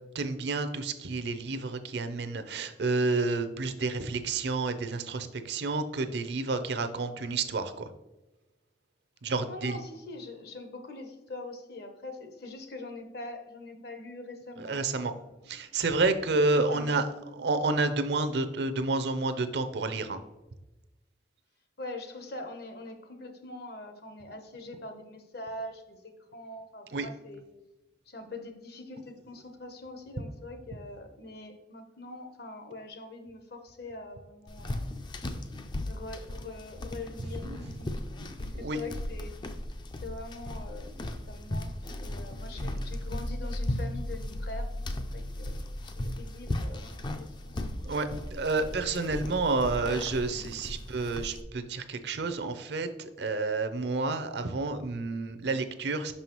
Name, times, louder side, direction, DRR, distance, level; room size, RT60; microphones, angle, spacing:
voice 1, 0.1-7.9 9.2-9.8 14.6-15.1 15.5-17.1 17.4-20.2 26.9-27.1 37.4-37.6 38.5-38.8 42.5-42.6 47.8-56.1, right 3 dB, 60° right, 10 dB, 0.5 m, -30 dB
voice 2, 9.5-14.9 15.2-15.6 16.5-17.0 21.8-27.4 28.1-35.1 35.8-37.9 38.2-39.4 40.0-41.0 41.3-45.6 45.9-47.7 48.6-49.1, left 2 dB, 55° left, 6 dB, 0.8 m, -43 dB
sound 1, 34.5-51.4, left 1 dB, 25° left, 0.3 m, -36 dB
5.7 x 5.5 x 3.0 m, 1.0 s
head